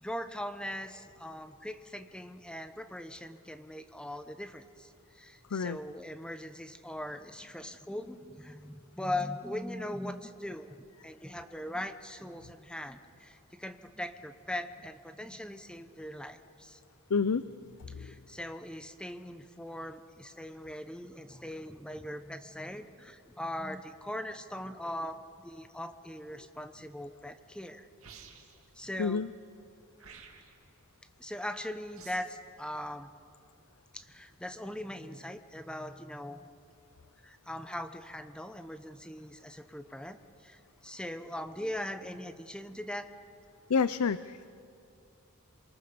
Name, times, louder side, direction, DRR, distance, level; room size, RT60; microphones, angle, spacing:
voice 1, 0.0-10.7 11.0-16.8 18.0-27.9 28.7-29.2 31.2-33.1 33.9-36.4 37.2-43.1, left 1 dB, 5° left, 9 dB, 0.9 m, -40 dB
voice 2, 17.1-17.4 29.0-29.3 43.7-44.5, left 5 dB, 90° left, 14 dB, 0.5 m, -28 dB
sound 1, 28.0-28.7 30.0-30.7 32.0-32.4, right 6 dB, 70° right, 2.6 m, -52 dB
27.5 x 23.5 x 6.9 m, 2.5 s
head